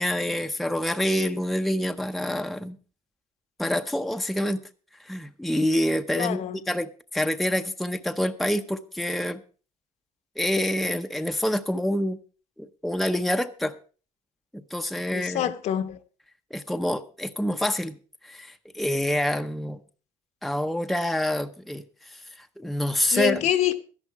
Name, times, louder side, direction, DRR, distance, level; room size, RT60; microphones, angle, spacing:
voice 1, 0.0-2.8 3.6-4.6 5.0-9.4 10.4-12.2 12.6-13.8 14.5-15.5 16.5-18.0 18.2-19.8 20.4-23.5, left 1 dB, ahead, 0.6 m, -27 dB
voice 2, 6.2-6.6 15.1-16.0 23.1-23.8, left 11 dB, 60° left, 1.0 m, -25 dB
12.5 x 11.0 x 4.6 m
cardioid pair, 130°, 13 cm